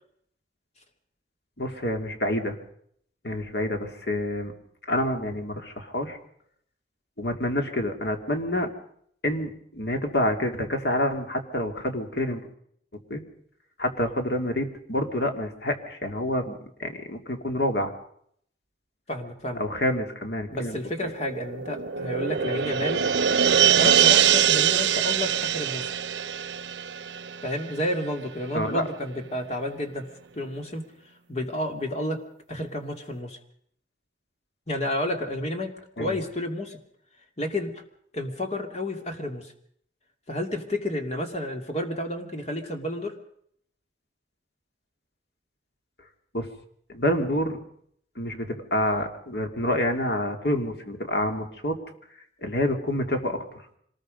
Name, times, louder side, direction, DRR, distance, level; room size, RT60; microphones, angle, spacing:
voice 1, 1.6-2.6 3.2-4.5 4.9-6.2 7.2-8.7 9.2-12.4 13.1-13.2 13.8-17.9 19.6-21.1 28.5-28.8 36.0-36.2 46.3-46.5 46.9-47.6 48.2-51.8 52.4-53.4, left 1 dB, 65° left, 5 dB, 2.7 m, -27 dB
voice 2, 19.1-19.6 20.5-23.0 23.8-25.9 27.4-30.1 30.4-30.8 31.3-32.2 32.5-33.4 34.7-35.7 36.0-36.8 37.4-37.7 38.1-39.5 40.3-43.1, left 1 dB, 40° left, 5 dB, 2.7 m, -30 dB
sound 1, 21.0-28.0 28.3-28.4, right 9 dB, 85° right, 0.7 m, -23 dB
25.5 x 20.0 x 5.3 m, 0.67 s
head